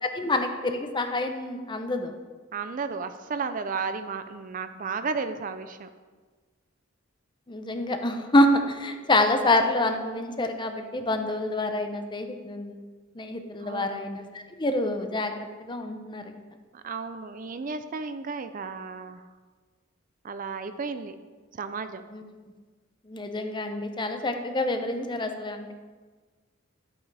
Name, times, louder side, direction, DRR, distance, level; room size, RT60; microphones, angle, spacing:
voice 1, 0.0-2.1 7.5-12.8 13.1-16.4 22.1-22.2 23.1-25.7, left 1 dB, 25° left, 6 dB, 0.7 m, -27 dB
voice 2, 2.5-5.9 13.6-14.0 16.7-19.2 20.2-21.1 21.5-22.0, right 5 dB, 40° right, 10 dB, 0.5 m, -33 dB
11.5 x 8.4 x 3.4 m, 1.4 s
head